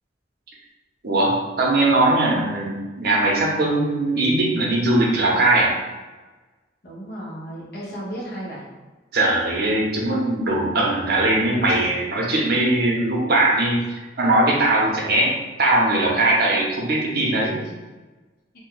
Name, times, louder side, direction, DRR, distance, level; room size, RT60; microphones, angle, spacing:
voice 1, 1.0-5.7 9.1-15.3 15.6-17.6, right 2 dB, 55° right, -2 dB, 0.7 m, -20 dB
voice 2, 6.8-8.6 11.7-11.8 17.2-17.6, equal, 55° left, -6 dB, 1.0 m, -35 dB
2.6 x 2.2 x 3.8 m, 1.2 s
head